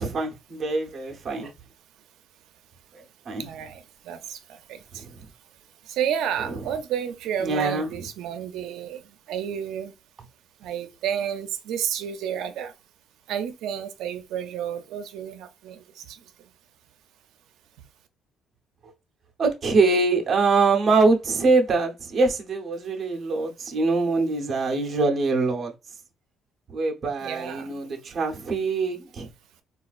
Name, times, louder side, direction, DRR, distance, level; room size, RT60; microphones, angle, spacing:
voice 1, 0.0-1.5 3.3-3.5 4.9-5.3 6.5-6.6 7.4-7.9 19.4-25.7 26.7-29.3, right 3 dB, 35° right, 0.8 m, -24 dB
voice 2, 3.4-5.0 5.9-9.0 9.3-9.9 10.6-12.7 13.3-16.2 27.2-27.7, right 9 dB, 75° right, 0.5 m, -31 dB
4.1 x 2.4 x 2.4 m
cardioid pair, 145°, 0 cm